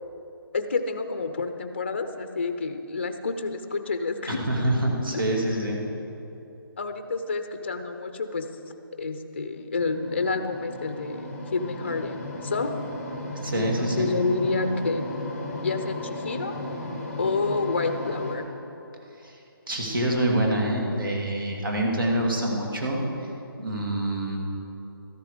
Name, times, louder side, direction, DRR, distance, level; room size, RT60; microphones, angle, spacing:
voice 1, 0.5-4.8 5.1-5.2 6.8-8.5 9.0-12.7 13.5-15.1 15.6-16.5 17.2-18.5, left 3 dB, 30° left, 8 dB, 0.6 m, -29 dB
voice 2, 4.3-5.8 13.4-14.1 19.2-19.4 19.7-23.0 23.6-24.4, right 1 dB, 65° right, -1 dB, 2.6 m, -26 dB
sound 1, 9.8-18.4, left 1 dB, ahead, 0.9 m, -35 dB
13.5 x 11.0 x 5.0 m, 2.8 s
hypercardioid pair, 180°, 12 cm